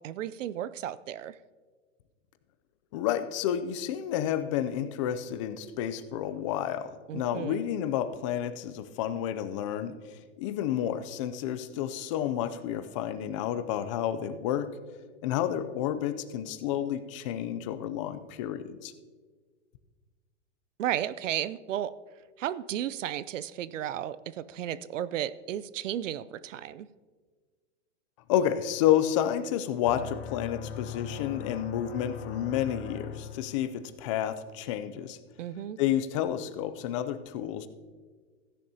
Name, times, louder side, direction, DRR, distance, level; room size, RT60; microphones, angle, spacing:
voice 1, 0.0-1.4 7.1-7.6 20.8-21.9 22.4-26.9 35.4-35.8, right 11 dB, 85° right, 17 dB, 0.6 m, -34 dB
voice 2, 2.9-14.8 15.2-18.9 28.3-35.2 35.8-37.7, left 10 dB, 25° left, 11 dB, 0.4 m, -30 dB
sound 1, 29.8-33.7, left 6 dB, 60° left, 1.4 m, -40 dB
15.5 x 10.5 x 2.8 m, 1.5 s
hypercardioid pair, 145°, 37 cm